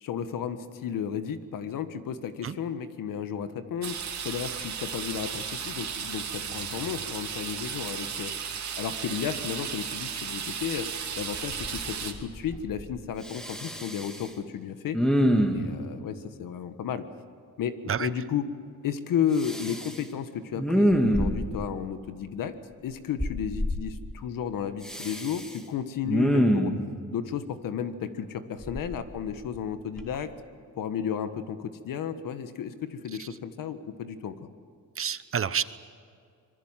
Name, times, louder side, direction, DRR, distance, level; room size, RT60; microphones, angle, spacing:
voice 1, 0.0-8.3 8.8-15.0 15.5-17.1 17.6-18.5 18.8-22.5 22.8-26.7 27.1-30.3 30.8-34.3, left 8 dB, 85° left, 10 dB, 1.6 m, -33 dB
sound 1, 3.8-12.1, right 7 dB, 60° right, 2.6 m, -35 dB
Respiratory sounds, 10.8-10.9 11.3-11.9 12.1-12.9 13.2-14.3 14.9-15.8 19.4-20.0 20.5-21.6 23.2-23.8 24.8-25.5 26.0-26.8 28.6-29.6 30.0-30.2, equal, ahead, 2.3 m, -26 dB
voice 2, 35.0-35.6, right 7 dB, 40° right, 14 dB, 0.9 m, -28 dB
25.5 x 22.0 x 7.5 m, 2.4 s
cardioid pair, 115°, 32 cm